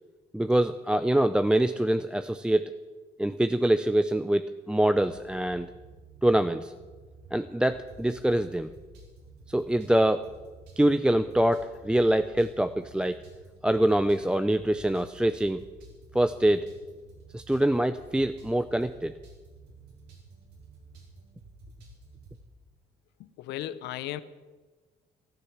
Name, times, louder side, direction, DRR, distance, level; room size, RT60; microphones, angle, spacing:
voice 1, 0.3-2.7 3.2-5.7 6.2-6.7 7.3-8.7 9.5-10.2 10.8-13.2 13.6-15.6 16.1-16.7 17.3-19.1, right 1 dB, 5° right, 9 dB, 0.5 m, -24 dB
sound 1, 4.7-22.4, right 3 dB, 90° right, 4.4 m, -52 dB
voice 2, 23.2-24.2, left 13 dB, 85° left, 14 dB, 0.8 m, -36 dB
14.0 x 13.5 x 7.3 m, 1.3 s
cardioid pair, 110°, 17 cm